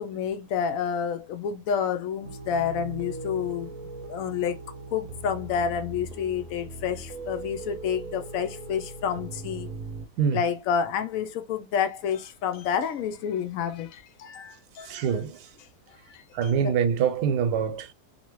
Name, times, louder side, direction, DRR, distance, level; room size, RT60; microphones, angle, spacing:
voice 1, 0.0-3.7 4.1-4.6 4.9-9.7 10.3-15.1 16.1-16.8, left 7 dB, 70° left, 0.9 m, -29 dB
sound 1, 2.2-10.1, right 3 dB, 65° right, 0.9 m, -39 dB
voice 2, 14.8-15.5 16.3-17.9, right 7 dB, 85° right, 1.2 m, -25 dB
2.7 x 2.7 x 2.9 m
omnidirectional pair, 1.7 m